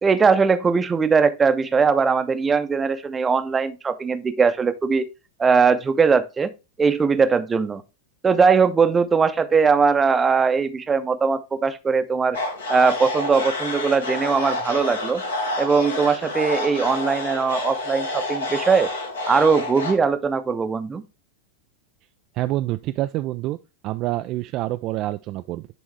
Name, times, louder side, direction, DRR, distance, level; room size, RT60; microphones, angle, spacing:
voice 1, 0.0-5.1 5.4-6.5 6.8-7.8 8.2-12.4 12.7-15.2 15.6-18.9 19.3-21.0, right 5 dB, 15° right, 0.7 m, -20 dB
sound 1, 12.3-19.9, left 2 dB, 70° left, 1.6 m, -28 dB
voice 2, 22.3-23.6 23.8-25.7, right 16 dB, 40° right, 0.3 m, -27 dB
10.5 x 3.5 x 3.2 m
figure-of-eight pair, 90°, 0 cm